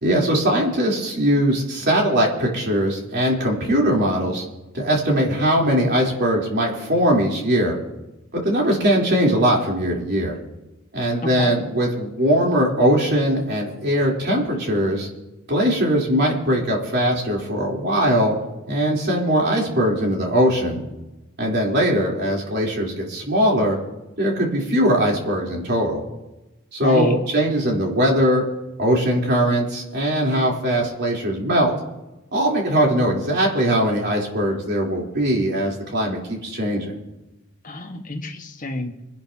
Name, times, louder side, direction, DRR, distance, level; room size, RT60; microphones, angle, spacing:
voice 1, 0.0-4.4 4.7-7.8 8.3-10.4 10.9-15.1 15.5-18.3 18.7-20.8 21.4-23.8 24.2-26.0 26.7-28.5 28.8-31.7 32.3-36.9, equal, 55° right, -2 dB, 3.8 m, -20 dB
voice 2, 26.8-27.1 37.6-39.0, left 1 dB, 40° left, 3 dB, 1.5 m, -28 dB
26.0 x 11.5 x 2.9 m, 1.0 s
head